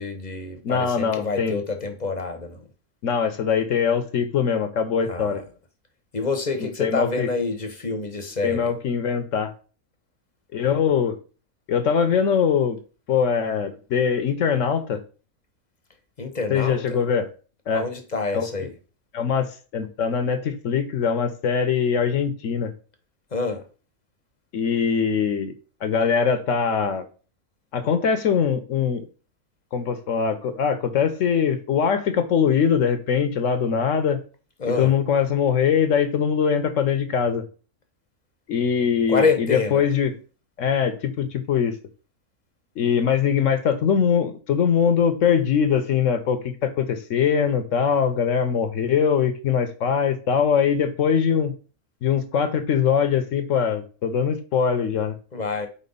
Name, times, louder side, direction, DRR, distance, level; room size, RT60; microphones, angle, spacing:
voice 1, 0.0-2.7 5.0-5.4 6.1-8.7 16.2-17.0 17.7-18.7 23.3-23.6 34.6-34.9 39.1-39.8 55.3-55.7, left 4 dB, 35° left, 0.8 m, -27 dB
voice 2, 0.6-1.6 3.0-5.4 6.6-7.3 8.4-9.5 10.5-11.2 11.7-12.8 13.1-15.0 16.5-17.3 17.7-17.9 18.3-18.5 19.1-22.7 24.5-25.5 25.8-27.1 27.7-29.0 29.7-34.2 34.8-37.4 38.5-39.2 39.5-40.1 40.6-41.7 42.8-51.5 52.0-55.1, left 7 dB, 65° left, 1.0 m, -22 dB
4.4 x 4.2 x 5.3 m
omnidirectional pair, 1.5 m